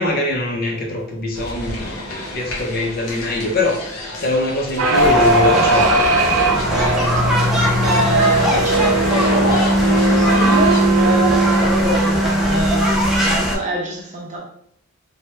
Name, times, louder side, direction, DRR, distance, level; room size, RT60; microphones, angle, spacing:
voice 1, 0.0-3.9 4.2-6.1, left 1 dB, 45° left, 1 dB, 0.6 m, -22 dB
sound 1, 1.3-10.8, left 2 dB, 80° left, 0.8 m, -32 dB
sound 2, 4.8-13.5, right 1 dB, 80° right, 0.5 m, -18 dB
sound 3, 4.9-13.6, equal, ahead, 0.4 m, -22 dB
voice 2, 7.8-14.4, right 2 dB, 35° right, -2 dB, 0.7 m, -24 dB
3.0 x 2.2 x 3.2 m, 0.65 s
head